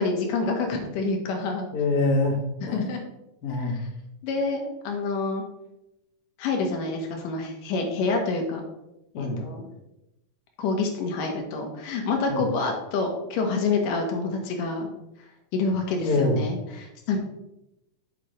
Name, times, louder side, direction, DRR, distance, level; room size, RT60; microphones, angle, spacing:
voice 1, 0.0-1.7 2.7-3.0 4.2-5.4 6.4-8.6 9.1-9.6 10.6-14.9 15.5-17.2, left 3 dB, 70° left, 2 dB, 2.7 m, -27 dB
voice 2, 1.7-2.9 3.4-3.9 9.2-9.4 12.3-12.5 16.0-16.4, left 2 dB, 90° left, 1 dB, 0.8 m, -25 dB
7.7 x 7.4 x 3.2 m, 0.90 s
omnidirectional pair, 4.0 m